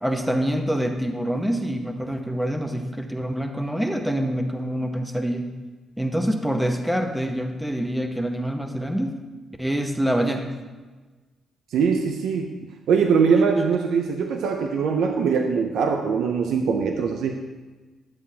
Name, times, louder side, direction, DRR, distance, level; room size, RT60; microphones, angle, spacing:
voice 1, 0.0-5.5 6.0-9.2 9.6-10.5, equal, 5° right, 4 dB, 0.8 m, -26 dB
voice 2, 11.7-17.4, right 5 dB, 85° right, 4 dB, 0.5 m, -22 dB
12.0 x 7.5 x 2.8 m, 1.3 s
cardioid pair, 105°, 0 cm